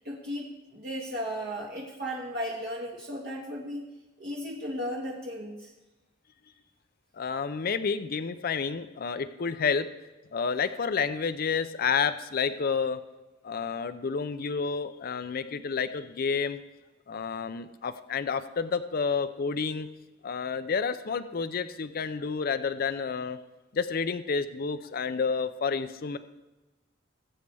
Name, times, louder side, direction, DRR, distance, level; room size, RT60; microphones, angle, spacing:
voice 1, 0.0-3.8 4.2-5.7, equal, 55° right, -3 dB, 1.6 m, -35 dB
voice 2, 7.1-9.9 10.3-13.0 13.4-16.6 17.1-19.9 20.2-23.4 23.7-26.2, left 5 dB, 50° left, 12 dB, 0.5 m, -30 dB
19.0 x 8.0 x 3.4 m, 1.1 s
head